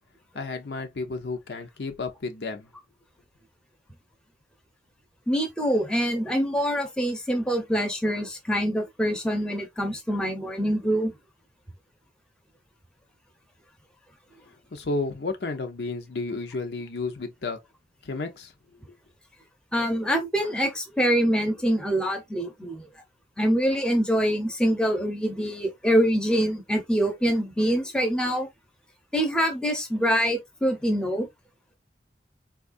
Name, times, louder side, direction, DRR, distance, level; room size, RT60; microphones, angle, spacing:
voice 1, 0.3-2.7 14.5-17.6 18.0-18.5 18.9-19.0, left 3 dB, 75° left, 0.7 m, -32 dB
voice 2, 5.3-11.1 19.7-22.9 23.4-28.5 29.1-31.3, equal, 5° left, 0.7 m, -25 dB
4.3 x 2.3 x 2.5 m
head